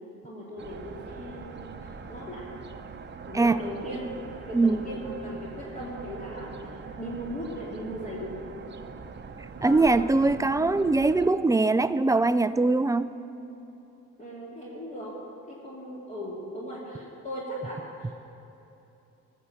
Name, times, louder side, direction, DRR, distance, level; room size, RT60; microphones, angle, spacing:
voice 1, 0.2-2.5 3.3-4.1 4.4-8.3 9.6-10.1 14.2-15.2 15.5-18.1, equal, 25° left, -6 dB, 2.4 m, -38 dB
sound 1, 0.6-11.3, right 5 dB, 35° right, 0.8 m, -43 dB
voice 2, 9.6-13.1, right 3 dB, 10° right, 13 dB, 0.3 m, -22 dB
14.5 x 7.0 x 7.1 m, 3.0 s
cardioid pair, 90°, 30 cm